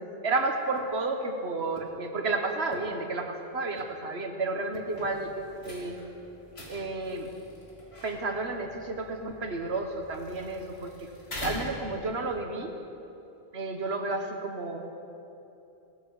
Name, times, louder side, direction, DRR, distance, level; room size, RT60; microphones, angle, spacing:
voice 1, 0.0-6.0 6.7-7.3 8.0-11.1 11.4-12.8 13.5-14.8, right 3 dB, 85° right, 5 dB, 1.5 m, -32 dB
sound 1, 0.8-0.9 1.8-1.9 2.5-2.9 3.5-3.9 4.6-4.9 5.5-5.8, left 2 dB, 25° right, 1.8 m, -44 dB
sound 2, 4.9-12.4, left 1 dB, 75° left, 2.8 m, -44 dB
18.5 x 14.0 x 4.8 m, 2.9 s
omnidirectional pair, 1.1 m